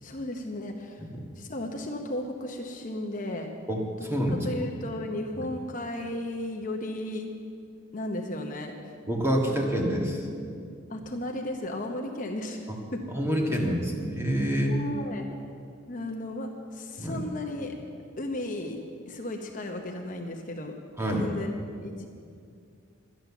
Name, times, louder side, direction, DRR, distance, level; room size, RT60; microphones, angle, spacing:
voice 1, 0.0-1.0 1.4-3.5 4.3-7.3 7.9-8.7 10.9-13.1 14.7-15.3 15.9-17.7 18.2-18.8 19.1-20.7 21.1-22.1, left 1 dB, 40° left, 2 dB, 0.9 m, -34 dB
voice 2, 3.7-4.5 5.4-5.5 9.1-10.3 13.1-14.8 17.0-17.2 21.0-21.3, equal, 10° right, -1 dB, 1.7 m, -27 dB
12.0 x 10.5 x 7.1 m, 2.3 s
head